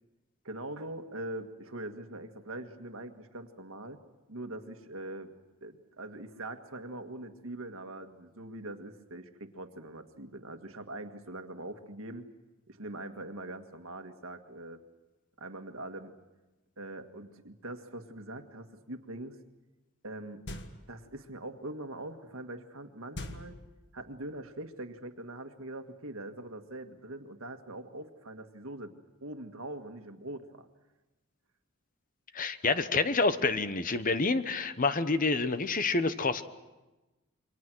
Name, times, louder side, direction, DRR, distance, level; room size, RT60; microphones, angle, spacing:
voice 1, 0.5-4.0 4.3-5.3 5.6-12.2 12.7-14.8 15.4-16.1 16.8-19.4 20.0-20.4 20.9-23.6 23.9-28.9 29.2-30.7, right 1 dB, 75° right, 6 dB, 1.8 m, -42 dB
sound 1, 20.5-21.1 23.1-24.2, left 1 dB, 55° left, 1.6 m, -43 dB
voice 2, 32.3-36.4, left 3 dB, 40° left, 12 dB, 1.0 m, -28 dB
28.0 x 24.0 x 6.2 m, 1.1 s
head